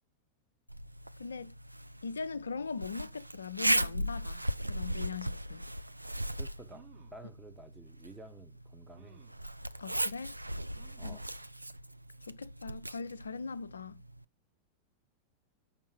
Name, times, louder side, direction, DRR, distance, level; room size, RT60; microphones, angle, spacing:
Zipper (clothing), 0.7-14.2, right 1 dB, 85° right, 0.3 m, -37 dB
voice 1, 1.2-1.6 2.0-4.4 4.7-5.6 9.8-10.4 11.0-11.2 12.3-14.0, left 5 dB, 75° left, 0.5 m, -40 dB
voice 2, 6.4-9.2 11.0-11.3, right 2 dB, 10° right, 1.1 m, -52 dB
sound 1, 6.7-7.3 8.0-8.1 8.9-9.5 10.7-11.2 11.7-11.8 12.1-12.2, right 7 dB, 45° right, 1.7 m, -60 dB
7.2 x 5.5 x 5.1 m
figure-of-eight pair, 90°, 0 cm